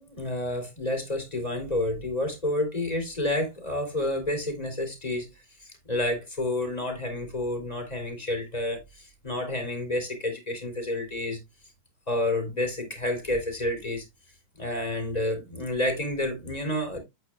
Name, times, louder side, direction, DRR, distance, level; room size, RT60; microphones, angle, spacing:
voice 1, 0.0-5.3 5.6-11.4 12.1-14.0 14.6-17.0, left 1 dB, 15° left, 2.8 m, -29 dB
8.8 x 8.4 x 2.3 m
omnidirectional pair, 3.5 m